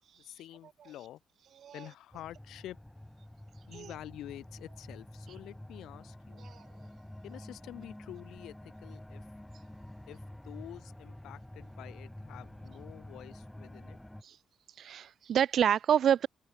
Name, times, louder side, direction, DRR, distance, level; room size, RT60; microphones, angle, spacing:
voice 1, 0.2-1.2 1.7-2.8 3.7-6.5 7.2-9.3 10.1-14.0, left 13 dB, 70° left, 5.7 m, -48 dB
sound 1, 2.1-14.2, left 1 dB, 5° left, 1.6 m, -48 dB
voice 2, 14.8-16.3, right 9 dB, 45° right, 0.3 m, -27 dB
open air
cardioid pair, 175°, 0 cm